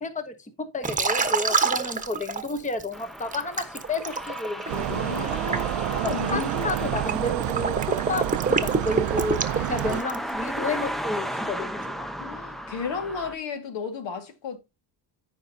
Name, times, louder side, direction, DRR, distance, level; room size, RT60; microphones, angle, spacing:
voice 1, 0.0-5.4 6.0-9.4 9.7-12.1, left 2 dB, 15° left, 1.1 m, -31 dB
Liquid, 0.8-2.8 3.3-10.3, right 5 dB, 15° right, 1.2 m, -27 dB
sound 1, 2.9-13.4, equal, ahead, 0.6 m, -36 dB
sound 2, 4.7-10.0, right 15 dB, 70° right, 0.6 m, -29 dB
voice 2, 4.9-6.7 9.7-9.8 12.2-14.6, left 5 dB, 70° left, 2.0 m, -33 dB
15.0 x 5.3 x 2.8 m
cardioid pair, 125°, 46 cm